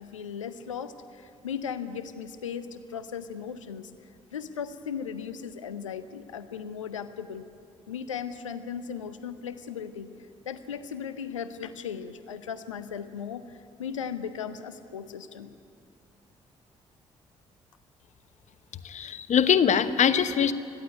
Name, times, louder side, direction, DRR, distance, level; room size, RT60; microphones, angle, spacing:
voice 1, 0.0-3.9 4.3-7.5 7.9-10.1 10.5-15.5, left 7 dB, 85° left, 13 dB, 0.7 m, -37 dB
voice 2, 18.8-20.5, left 8 dB, 50° left, 13 dB, 1.1 m, -22 dB
21.0 x 14.5 x 9.6 m, 2.4 s
figure-of-eight pair, 40°, 16 cm